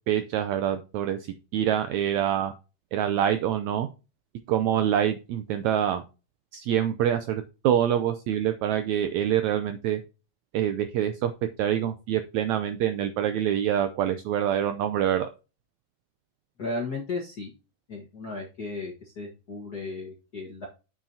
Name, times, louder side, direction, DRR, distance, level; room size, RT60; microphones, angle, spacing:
voice 1, 0.1-1.3 1.5-2.5 2.9-3.9 4.5-6.0 6.5-10.0 10.5-11.3 11.6-15.3, right 10 dB, 80° right, 9 dB, 1.6 m, -25 dB
voice 2, 16.6-17.5 17.9-20.7, left 3 dB, 50° left, -2 dB, 1.2 m, -35 dB
8.8 x 7.2 x 2.7 m, 0.31 s
omnidirectional pair, 3.9 m